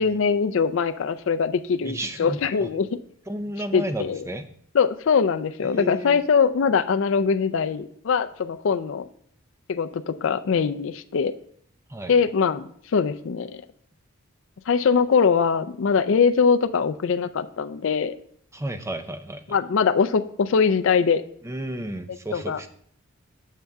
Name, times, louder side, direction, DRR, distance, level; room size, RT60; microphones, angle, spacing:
voice 1, 0.0-2.9 3.7-4.2 4.7-9.0 9.7-11.3 12.1-12.6 12.9-13.6 14.7-18.2 19.5-21.2 22.3-22.6, left 5 dB, 65° left, 10 dB, 0.4 m, -22 dB
voice 2, 1.8-2.7 3.3-4.5 5.6-6.2 11.9-12.1 18.5-19.6 21.4-22.7, right 1 dB, 15° right, 9 dB, 0.4 m, -32 dB
7.3 x 6.7 x 3.4 m, 0.63 s
head